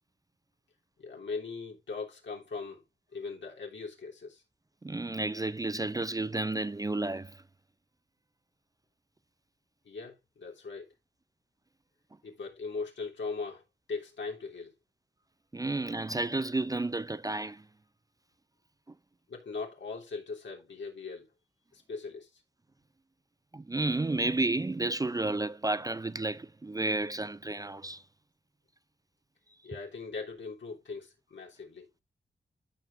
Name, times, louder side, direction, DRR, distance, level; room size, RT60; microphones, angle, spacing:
voice 1, 1.0-2.8 3.1-4.4 9.8-10.9 12.2-13.6 13.9-14.8 15.6-15.7 19.3-21.3 21.7-22.3 29.6-31.9, left 4 dB, 80° left, 3.2 m, -40 dB
voice 2, 4.8-7.4 15.5-17.6 23.5-28.0, right 2 dB, 20° right, 0.4 m, -31 dB
14.5 x 5.5 x 2.6 m
cardioid pair, 55°, 19 cm